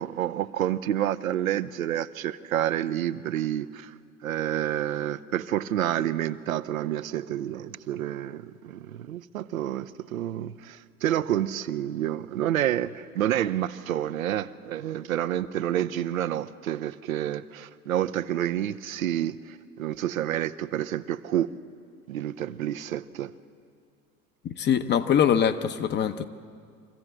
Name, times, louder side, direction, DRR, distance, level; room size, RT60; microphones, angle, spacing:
voice 1, 0.0-3.9 4.2-21.5 22.1-23.3, right 11 dB, 70° right, 12 dB, 0.7 m, -29 dB
voice 2, 24.4-26.2, left 8 dB, 25° left, 10 dB, 0.8 m, -23 dB
24.5 x 15.0 x 7.7 m, 2.2 s
figure-of-eight pair, 80°, 43 cm